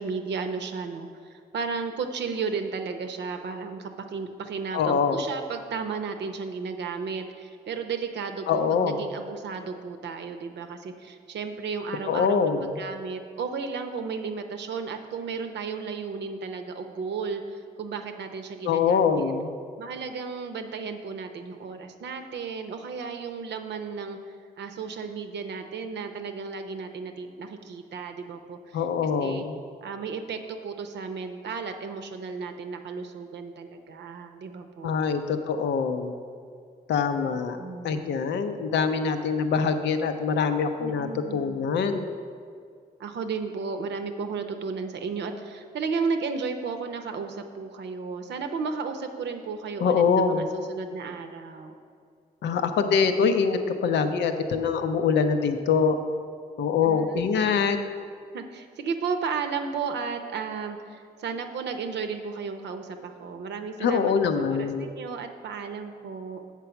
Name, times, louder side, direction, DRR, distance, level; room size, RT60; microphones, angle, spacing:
voice 1, 0.0-19.3 19.8-28.8 29.2-29.5 29.8-34.9 37.2-38.2 40.8-41.5 43.0-51.7 56.8-57.6 58.3-64.1 64.5-66.4, right 5 dB, 80° right, 6 dB, 0.7 m, -34 dB
voice 2, 4.7-5.2 8.5-9.0 12.1-12.7 18.6-19.5 28.7-29.6 34.8-36.1 36.9-37.6 37.8-42.0 49.8-50.5 52.4-56.0 56.6-57.8 63.8-64.9, left 5 dB, 90° left, 7 dB, 0.5 m, -24 dB
7.6 x 4.6 x 6.9 m, 2.2 s
cardioid pair, 60°, 18 cm